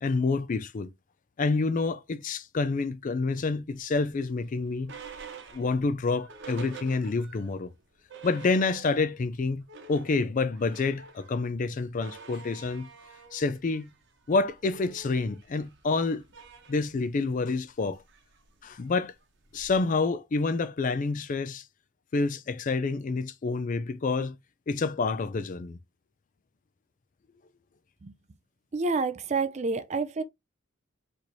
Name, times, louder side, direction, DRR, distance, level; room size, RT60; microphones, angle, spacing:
voice 1, 0.0-0.9 1.4-4.9 5.5-7.7 8.2-9.6 9.9-12.9 13.3-13.9 14.3-16.2 16.7-18.0 18.6-19.1 19.5-21.6 22.1-24.4 24.7-25.8, left 3 dB, 40° left, 0.4 m, -28 dB
sound 1, 3.9-7.5 7.8-7.9 8.1-9.2 9.5-20.0, right 5 dB, 55° right, 0.9 m, -48 dB
voice 2, 28.7-30.2, right 4 dB, 35° right, 0.4 m, -28 dB
4.2 x 3.1 x 2.6 m
head